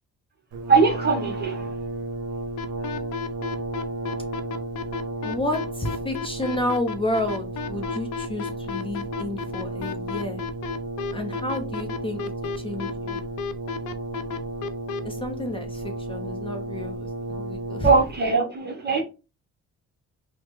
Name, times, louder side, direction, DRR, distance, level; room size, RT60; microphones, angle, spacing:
Brass instrument, 0.5-18.3, right 2 dB, 75° right, 0.7 m, -33 dB
voice 1, 0.7-1.7 17.8-19.0, right 4 dB, 35° right, 0.8 m, -21 dB
sound 1, 2.6-15.0, left 8 dB, 80° left, 0.5 m, -32 dB
voice 2, 5.2-10.4 11.1-12.2 12.6-13.2 15.0-17.9, left 1 dB, 20° left, 0.5 m, -31 dB
3.1 x 2.0 x 3.1 m
cardioid pair, 90°, 30 cm